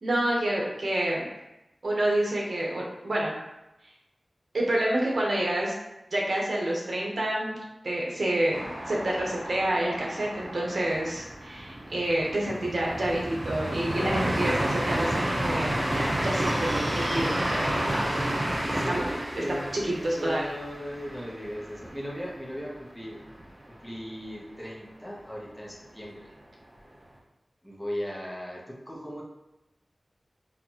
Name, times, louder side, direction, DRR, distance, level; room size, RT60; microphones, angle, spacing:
voice 1, 0.0-1.2 1.8-3.3 4.5-5.7 6.1-7.6 7.8-8.6 8.9-18.1 18.9-19.0 20.0-20.4, right 1 dB, 70° right, -3 dB, 1.0 m, -28 dB
sound 1, 8.5-22.2 22.6-22.7 23.0-23.6, right 1 dB, 30° right, 0.8 m, -31 dB
voice 2, 18.7-23.2 23.7-26.3 27.6-29.2, equal, 10° left, -4 dB, 1.0 m, -37 dB
4.4 x 2.5 x 2.9 m, 0.94 s
wide cardioid pair, 70°, 0 cm